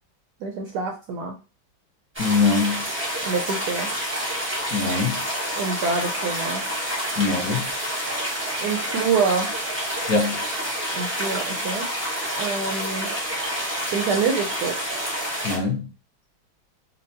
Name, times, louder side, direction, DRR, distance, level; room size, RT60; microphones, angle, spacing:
voice 1, 0.4-1.3 3.2-3.9 5.5-6.6 8.6-9.5 10.9-11.9 12.4-13.1 13.9-14.8, right 5 dB, 75° right, 1.0 m, -26 dB
sound 1, 2.1-15.6, equal, 10° right, 0.6 m, -28 dB
voice 2, 2.2-2.8 4.7-5.2 7.2-7.7 10.1-10.4 15.4-15.9, left 4 dB, 55° left, 1.2 m, -22 dB
4.3 x 2.3 x 2.7 m
omnidirectional pair, 2.1 m